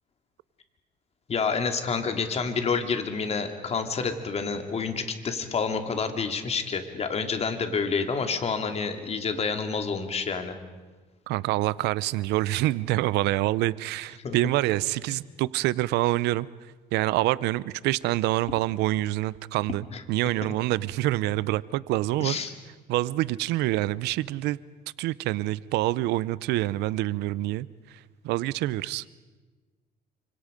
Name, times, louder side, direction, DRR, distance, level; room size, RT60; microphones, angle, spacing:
voice 1, 1.3-10.6 14.2-14.4 19.9-20.0 22.2-22.5, left 5 dB, 40° left, 6 dB, 2.6 m, -28 dB
voice 2, 11.3-16.5 16.9-22.4 22.9-24.6 25.0-27.7 28.2-29.0, right 17 dB, 90° right, 20 dB, 0.7 m, -26 dB
29.5 x 26.0 x 5.2 m, 1.3 s
cardioid pair, 110°, 17 cm